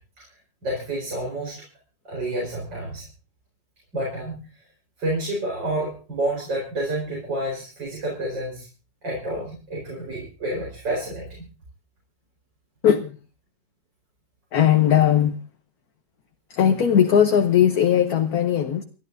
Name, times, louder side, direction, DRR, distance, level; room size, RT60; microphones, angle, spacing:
voice 1, 0.6-1.7 2.1-3.1 3.9-4.5 5.0-8.7 9.0-11.5, right 1 dB, 80° right, 5.2 m, -29 dB
voice 2, 12.8-13.2 14.5-15.4 16.5-18.8, left 9 dB, 60° left, 1.3 m, -18 dB
30.0 x 11.0 x 2.6 m
omnidirectional pair, 1.9 m